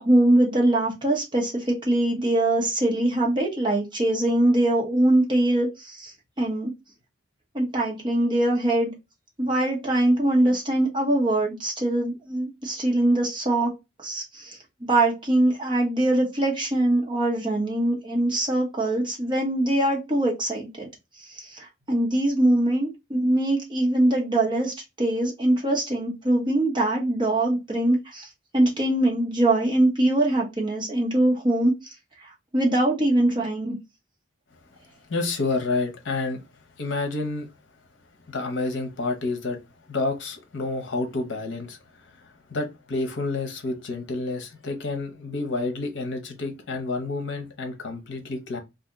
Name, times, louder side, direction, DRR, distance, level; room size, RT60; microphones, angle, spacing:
voice 1, 0.0-6.1 6.4-6.7 7.5-8.9 9.4-13.7 14.0-20.9 21.3-28.3 28.5-31.7 32.5-33.7, right 1 dB, 25° right, 1.0 m, -22 dB
voice 2, 35.1-36.4 36.8-37.5 38.3-39.6 39.9-41.8 42.1-48.6, left 3 dB, 65° left, 0.8 m, -29 dB
2.8 x 2.5 x 3.6 m
head